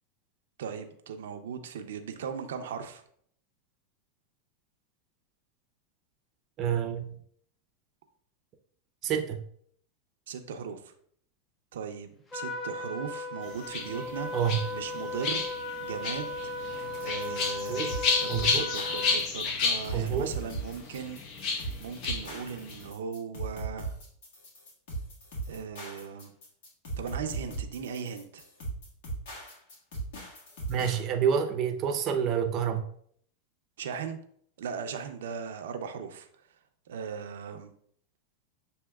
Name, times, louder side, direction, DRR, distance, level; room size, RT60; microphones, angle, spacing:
voice 1, 0.6-3.0 10.3-10.9 11.7-14.3 14.7-15.4 15.8-16.5 17.0-21.2 21.8-24.0 25.5-26.3 27.0-28.4 33.8-34.2 34.6-36.3 36.9-37.7, right 6 dB, 80° right, 7 dB, 0.5 m, -38 dB
voice 2, 6.6-7.2 9.0-9.4 14.3-14.6 17.7-17.9 18.3-18.7 19.9-20.3 30.7-32.9, right 8 dB, 40° right, 5 dB, 0.6 m, -28 dB
Trumpet, 12.3-19.2, left 2 dB, 15° left, 0.6 m, -36 dB
sound 1, 13.4-22.9, left 4 dB, 45° left, 0.8 m, -32 dB
sound 2, 17.0-31.0, right 3 dB, 70° left, 1.7 m, -38 dB
7.0 x 2.8 x 2.3 m, 0.63 s
supercardioid pair, 125°, 0 cm